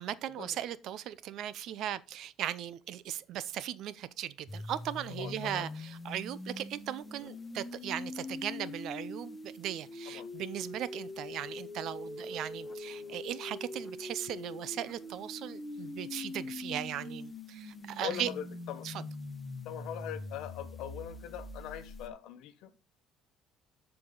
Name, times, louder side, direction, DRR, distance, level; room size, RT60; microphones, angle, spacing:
voice 1, 0.0-18.3 18.8-18.9, right 11 dB, 55° right, 0.6 m, -38 dB
sound 1, 4.5-22.1, left 2 dB, 10° left, 0.9 m, -43 dB
voice 2, 5.1-5.7 10.1-10.3 18.0-18.9 19.6-22.7, left 10 dB, 65° left, 1.2 m, -42 dB
13.5 x 4.9 x 3.9 m
cardioid pair, 160°, 0 cm